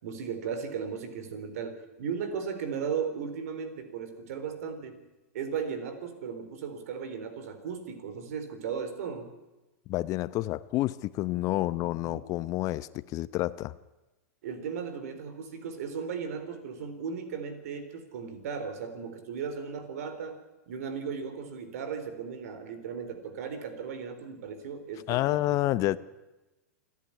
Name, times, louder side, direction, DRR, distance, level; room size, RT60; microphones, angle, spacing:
voice 1, 0.0-5.0 5.3-9.3 11.8-12.2 14.4-20.4 20.7-25.6, right 6 dB, 70° right, 9 dB, 4.1 m, -36 dB
voice 2, 9.9-13.7 25.1-26.0, left 16 dB, 40° left, 17 dB, 0.8 m, -29 dB
28.0 x 11.5 x 10.0 m, 1.1 s
hypercardioid pair, 110°, 9 cm